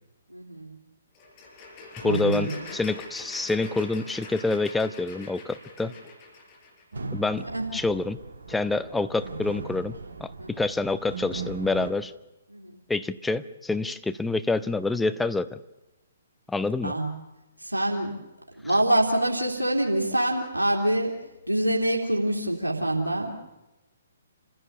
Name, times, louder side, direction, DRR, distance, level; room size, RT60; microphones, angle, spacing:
voice 1, 0.3-0.8 2.0-2.6 7.5-7.6 10.4-10.6 12.5-12.7 16.8-17.1 17.6-18.1 18.6-21.1 21.5-23.4, right 1 dB, 85° right, 0 dB, 3.0 m, -25 dB
sound 1, 1.1-6.8, left 3 dB, 30° left, 4.8 m, -44 dB
voice 2, 2.0-5.9 7.1-7.4 7.7-8.2 8.5-9.9 10.2-12.1 12.9-15.6 16.5-16.9, left 3 dB, 5° left, 11 dB, 0.7 m, -27 dB
sound 2, 6.9-11.9, right 4 dB, 70° right, 1.4 m, -38 dB
27.0 x 15.5 x 7.0 m, 1.0 s
figure-of-eight pair, 125°, 0 cm